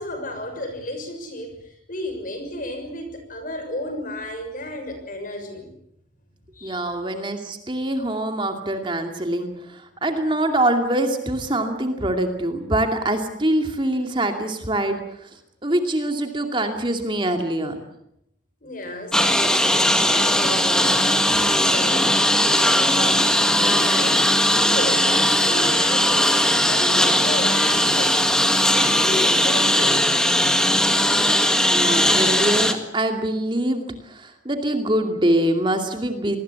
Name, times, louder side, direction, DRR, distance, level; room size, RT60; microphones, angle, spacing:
voice 1, 0.0-5.7 6.5-6.9 18.6-23.3 23.6-30.2, left 1 dB, 45° left, 6 dB, 6.5 m, -33 dB
voice 2, 6.6-15.0 15.6-17.8 31.7-36.4, right 1 dB, 25° right, 5 dB, 2.4 m, -24 dB
Engine, 19.1-32.7, left 1 dB, 5° left, 1.9 m, -19 dB
26.5 x 20.5 x 8.3 m, 0.76 s
head